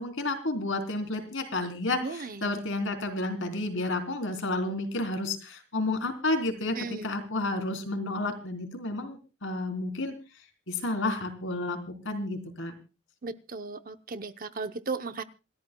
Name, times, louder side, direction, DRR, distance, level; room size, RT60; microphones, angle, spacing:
voice 1, 0.0-10.4 10.7-12.7, left 2 dB, 60° left, 6 dB, 3.6 m, -31 dB
voice 2, 2.0-2.6 6.8-7.1 13.2-15.2, right 4 dB, 40° right, 9 dB, 0.7 m, -36 dB
27.5 x 13.0 x 2.3 m, 0.31 s
head